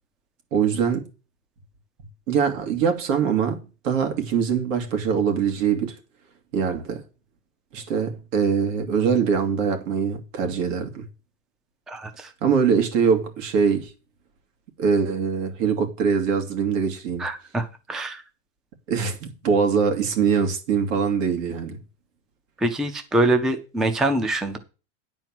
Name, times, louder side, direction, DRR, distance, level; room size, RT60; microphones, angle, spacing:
voice 1, 0.5-1.1 2.3-6.0 6.5-7.0 7.7-11.1 12.4-13.9 14.8-17.3 18.9-21.8, right 6 dB, 80° right, 2.8 m, -23 dB
voice 2, 11.9-12.3 17.2-18.2 22.6-24.6, right 1 dB, ahead, 0.4 m, -24 dB
10.5 x 4.5 x 7.5 m
supercardioid pair, 160°, 39 cm